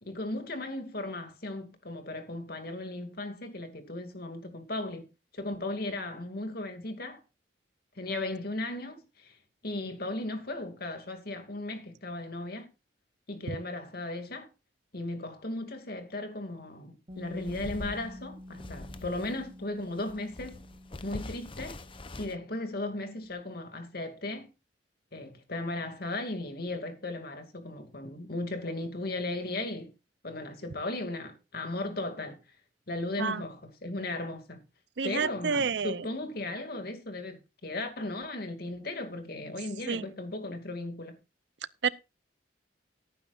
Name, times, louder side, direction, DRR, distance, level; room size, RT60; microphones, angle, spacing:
voice 1, 0.0-5.1 5.3-7.2 8.0-9.4 9.6-12.7 13.3-14.5 14.9-20.6 21.0-21.8 22.2-24.5 25.1-29.9 30.2-32.4 32.9-34.6 35.0-41.2, left 2 dB, 55° left, 2.5 m, -36 dB
sound 1, 17.1-19.5 19.8-22.4, left 2 dB, 30° left, 0.8 m, -43 dB
Bass guitar, 17.1-23.3, left 1 dB, 30° right, 1.3 m, -49 dB
voice 2, 35.0-36.0 39.9-40.1 41.8-41.9, right 5 dB, 70° right, 0.6 m, -29 dB
18.0 x 9.4 x 2.5 m
head